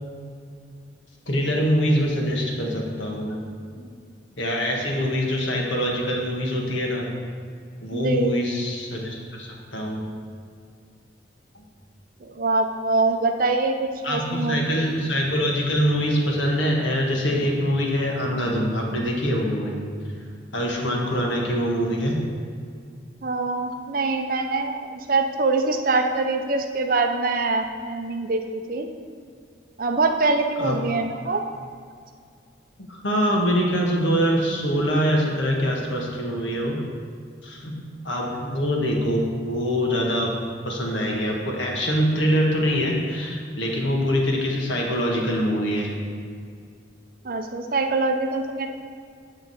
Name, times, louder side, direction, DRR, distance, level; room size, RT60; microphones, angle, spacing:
voice 1, 1.3-3.4 4.4-7.1 7.8-10.0 11.5-11.6 14.0-19.8 20.5-22.1 30.6-30.7 32.9-36.8 37.4-40.4 40.6-45.9, equal, 80° left, -1 dB, 1.6 m, -24 dB
voice 2, 7.9-8.4 12.2-14.8 23.2-28.9 29.8-31.4 47.2-48.7, right 3 dB, 50° right, 5 dB, 0.6 m, -24 dB
9.4 x 3.8 x 7.2 m, 2.2 s
head